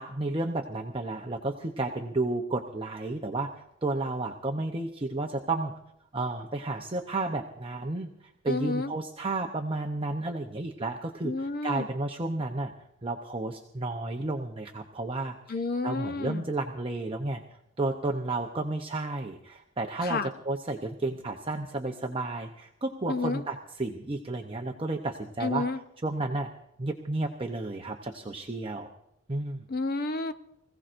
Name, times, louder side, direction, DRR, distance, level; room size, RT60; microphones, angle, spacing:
voice 1, 0.0-5.7 6.1-12.7 13.0-17.4 17.8-25.7 26.0-26.5 26.8-28.9 29.3-29.6, right 2 dB, 25° right, 2 dB, 0.7 m, -32 dB
voice 2, 8.5-8.9 11.2-11.9 15.5-16.4 20.0-20.3 23.1-23.4 25.4-25.8 29.7-30.3, left 3 dB, 45° left, 10 dB, 0.7 m, -30 dB
25.5 x 16.0 x 2.6 m, 0.80 s
head